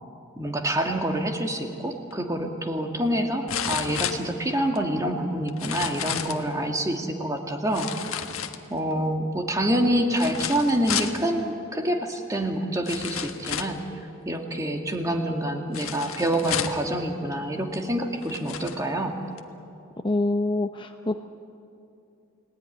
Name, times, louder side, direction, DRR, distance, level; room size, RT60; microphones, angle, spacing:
voice 1, 0.4-8.2 8.7-13.8 14.3-19.1, right 1 dB, 15° right, 3 dB, 2.2 m, -27 dB
sound 1, 2.1-2.2 3.5-4.8 5.5-6.4 7.7-8.9 10.1-11.2 12.2-12.3 12.9-13.8 15.7-16.9 17.7-17.8 18.2-18.8 19.4-19.5, left 8 dB, 75° left, 1.5 m, -31 dB
voice 2, 20.0-21.2, left 2 dB, 20° left, 6 dB, 0.7 m, -25 dB
29.5 x 18.5 x 9.9 m, 2.6 s
head